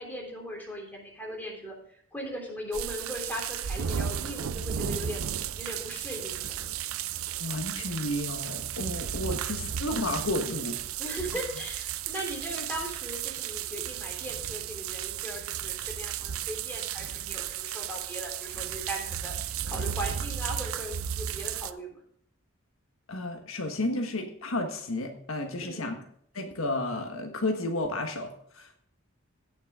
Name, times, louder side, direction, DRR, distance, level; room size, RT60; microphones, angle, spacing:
voice 1, 0.0-5.2 5.6-6.7 9.3-9.4 11.0-22.0 25.6-26.0, equal, 10° left, -1 dB, 3.3 m, -38 dB
sound 1, 2.7-21.7, right 9 dB, 90° right, 0.5 m, -34 dB
voice 2, 7.4-10.8 23.1-26.0 26.3-28.8, left 2 dB, 75° left, 4 dB, 1.4 m, -32 dB
17.0 x 6.2 x 3.7 m, 0.65 s
head